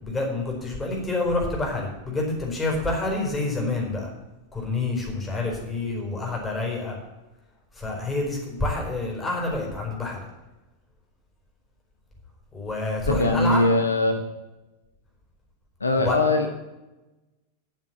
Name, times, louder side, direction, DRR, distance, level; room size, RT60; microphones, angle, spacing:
voice 1, 0.0-4.1 4.5-7.0 7.7-10.3 12.5-13.6 16.0-16.2, left 2 dB, 10° left, -1 dB, 4.4 m, -28 dB
voice 2, 13.1-14.2 15.8-16.5, left 2 dB, 80° left, 5 dB, 1.1 m, -21 dB
10.0 x 7.1 x 8.6 m, 1.0 s
figure-of-eight pair, 90°, 0 cm